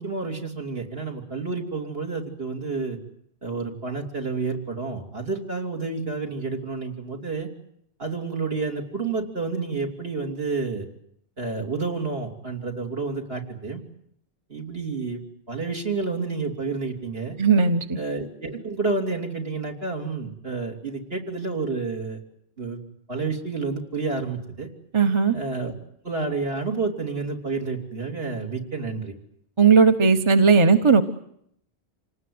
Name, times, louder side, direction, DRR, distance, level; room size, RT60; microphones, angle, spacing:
voice 1, 0.0-3.0 3.4-7.5 8.0-10.9 11.4-13.8 14.5-15.2 15.5-17.4 18.0-22.2 22.6-22.8 23.1-24.7 25.3-25.7 26.0-29.1, right 4 dB, 60° right, 1 dB, 3.6 m, -29 dB
voice 2, 17.4-18.0 24.9-25.3 29.6-31.0, right 5 dB, 25° right, 8 dB, 1.1 m, -17 dB
27.0 x 19.0 x 9.6 m, 0.73 s
omnidirectional pair, 1.1 m